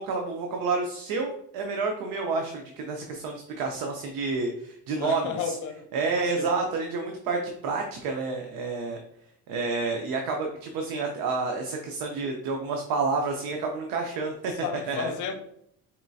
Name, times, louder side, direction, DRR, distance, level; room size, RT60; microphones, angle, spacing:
voice 1, 0.0-5.5 5.9-9.0 9.5-14.5 14.9-15.1, right 4 dB, 80° right, 0.7 m, -29 dB
voice 2, 4.9-5.9 6.2-6.5 14.6-15.3, left 6 dB, 55° left, 0.7 m, -33 dB
4.4 x 3.1 x 2.6 m
cardioid pair, 115°, 36 cm